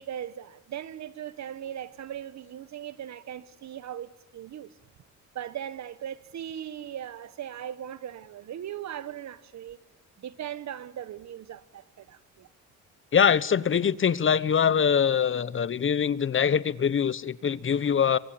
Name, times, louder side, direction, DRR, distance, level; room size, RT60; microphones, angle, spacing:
voice 1, 0.0-4.7 5.3-9.8 10.2-12.5, right 10 dB, 65° right, 1.6 m, -39 dB
voice 2, 13.1-18.2, left 7 dB, 40° left, 1.1 m, -23 dB
25.5 x 23.5 x 8.9 m
cardioid pair, 90°, 30 cm